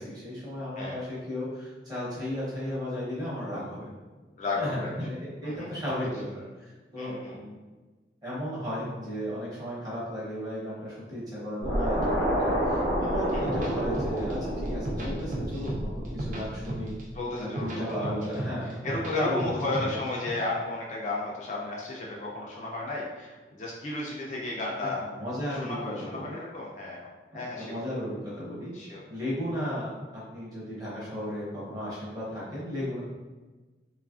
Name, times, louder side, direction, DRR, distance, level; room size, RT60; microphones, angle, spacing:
voice 1, 0.0-3.9 4.6-7.6 8.2-17.0 17.4-18.8 19.1-20.0 25.0-26.3 27.3-28.7 29.1-33.0, equal, 20° right, -8 dB, 0.9 m, -35 dB
voice 2, 4.4-4.9 5.4-5.7 7.0-7.4 13.3-13.4 17.1-18.1 18.8-25.0 25.5-27.1 27.3-27.8 28.7-29.0, left 2 dB, 45° left, -4 dB, 0.4 m, -33 dB
sound 1, 11.6-16.9, equal, 85° right, 1.1 m, -29 dB
sound 2, 13.3-14.3 14.6-15.8 16.0-17.0 17.4-19.1 19.4-20.3, right 1 dB, 45° right, 0.5 m, -34 dB
3.0 x 2.4 x 2.4 m, 1.2 s
head